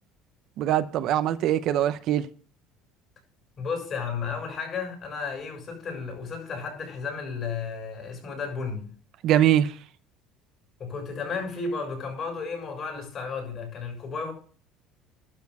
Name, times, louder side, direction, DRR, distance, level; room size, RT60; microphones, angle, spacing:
voice 1, 0.6-2.3 9.2-9.7, right 11 dB, 60° right, 0.7 m, -22 dB
voice 2, 3.6-8.9 10.8-14.3, left 5 dB, 40° left, 6.7 m, -33 dB
12.0 x 4.5 x 8.2 m
cardioid pair, 125°, 0 cm